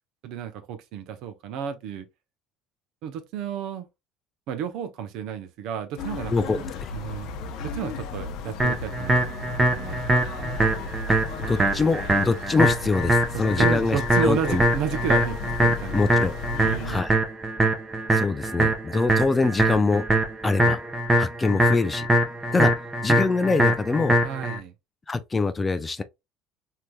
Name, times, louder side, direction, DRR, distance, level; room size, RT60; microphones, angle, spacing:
voice 1, 0.2-2.1 3.0-3.9 4.5-6.7 6.9-7.3 7.6-9.2 9.6-10.6 13.6-16.3 16.6-17.0 24.2-24.7, right 8 dB, 65° right, 0.6 m, -32 dB
sound 1, 6.0-17.0, left 4 dB, 60° left, 0.6 m, -35 dB
voice 2, 6.3-6.9 11.4-14.6 15.9-16.3 16.8-17.1 18.1-20.1 20.4-20.8 21.2-22.1 22.5-22.7 23.0-24.2 25.1-26.0, left 3 dB, 20° left, 0.4 m, -24 dB
sound 2, 8.6-24.6, right 1 dB, 20° right, 0.8 m, -23 dB
3.2 x 2.8 x 2.2 m
supercardioid pair, 115°, 0 cm